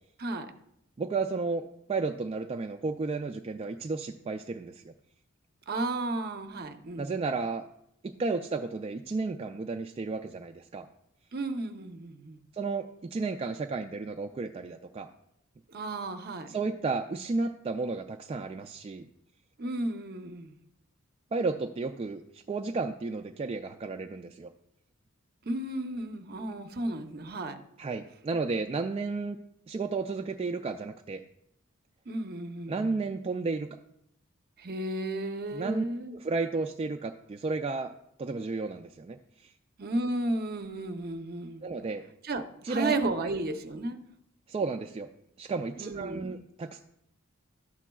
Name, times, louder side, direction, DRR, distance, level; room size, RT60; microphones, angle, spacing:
voice 1, 0.2-0.5 5.7-7.1 11.3-12.4 15.7-16.5 19.6-20.6 25.4-27.6 32.1-33.0 34.6-36.2 39.8-41.7 42.2-44.0 45.8-46.4, right 2 dB, 50° right, 7 dB, 0.7 m, -33 dB
voice 2, 1.0-4.9 7.0-7.7 8.0-10.9 12.5-15.1 16.5-19.1 21.3-24.5 27.8-29.4 29.7-31.2 32.7-33.7 35.5-35.8 36.1-37.9 38.2-39.5 41.6-42.0 42.6-43.0 44.5-45.1 45.4-46.8, right 3 dB, 30° right, 5 dB, 0.3 m, -33 dB
12.0 x 7.1 x 2.3 m, 0.77 s
head